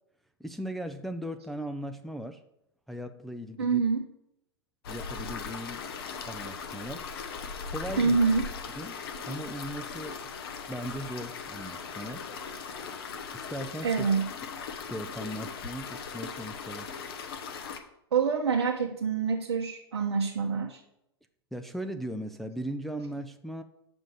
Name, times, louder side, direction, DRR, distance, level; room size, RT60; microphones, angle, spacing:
voice 1, 0.4-2.4 2.9-3.8 4.9-5.9 6.2-7.1 7.6-8.2 8.8-9.0 9.3-10.2 10.7-12.3 13.3-14.1 14.9-16.9 21.5-23.6, equal, ahead, 6 dB, 0.4 m, -38 dB
voice 2, 3.6-4.1 8.0-8.5 13.8-14.3 18.1-20.8, right 5 dB, 75° right, 0 dB, 0.8 m, -26 dB
sound 1, 4.8-17.8, left 5 dB, 65° left, 1.0 m, -39 dB
6.4 x 5.3 x 6.3 m, 0.80 s
hypercardioid pair, 105°, 14 cm